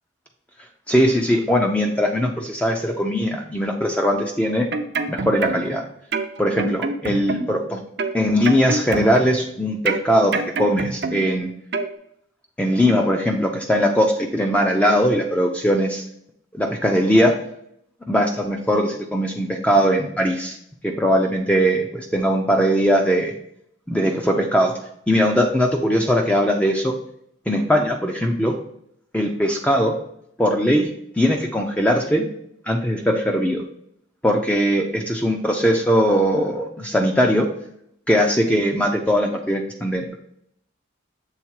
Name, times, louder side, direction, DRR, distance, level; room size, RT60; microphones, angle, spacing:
voice 1, 0.9-4.7 5.1-5.8 6.4-7.8 8.1-11.5 12.6-16.0 16.5-17.3 18.1-20.6 20.8-23.3 23.9-24.7 25.1-26.9 27.5-28.5 29.1-29.9 30.4-30.9 31.2-32.3 32.7-33.6 34.2-37.5 38.1-40.1, equal, 5° left, 2 dB, 0.5 m, -20 dB
sound 1, 4.5-5.8 6.1-7.6 8.0-9.5 9.9-11.4 11.7-11.9, right 4 dB, 60° right, 0.5 m, -26 dB
7.2 x 3.6 x 4.6 m, 0.72 s
head